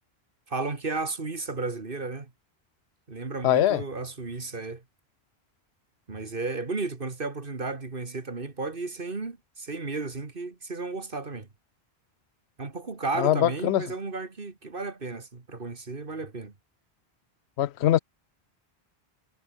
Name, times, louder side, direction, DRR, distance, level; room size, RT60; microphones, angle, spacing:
voice 1, 0.5-2.3 3.1-4.8 6.1-11.5 12.6-16.5, right 3 dB, 60° right, 2.3 m, -33 dB
voice 2, 3.4-3.8 13.2-13.8 17.6-18.0, left 12 dB, 85° left, 0.9 m, -22 dB
omnidirectional pair, 1.1 m